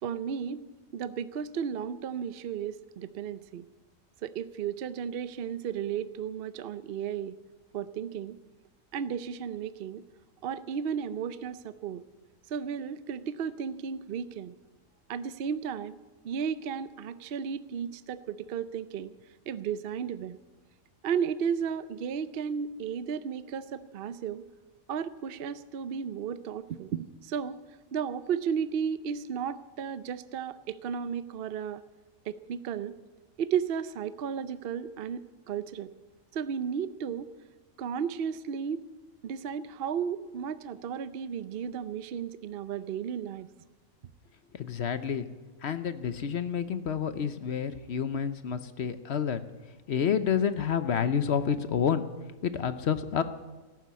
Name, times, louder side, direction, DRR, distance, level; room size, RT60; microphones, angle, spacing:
voice 1, 0.0-0.7 0.9-3.7 4.2-7.3 7.7-8.4 8.9-10.0 10.4-12.0 12.5-14.5 15.1-16.0 16.2-19.1 19.5-20.4 21.0-24.4 24.9-27.6 27.9-31.8 32.3-32.9 33.4-35.9 36.3-37.3 37.8-38.8 39.2-43.5, right 7 dB, 55° right, 14 dB, 0.7 m, -34 dB
voice 2, 44.5-45.3 45.6-49.4 49.9-52.1 52.4-53.2, left 7 dB, 60° left, 12 dB, 0.9 m, -29 dB
14.0 x 12.0 x 8.3 m, 1.2 s
omnidirectional pair, 1.4 m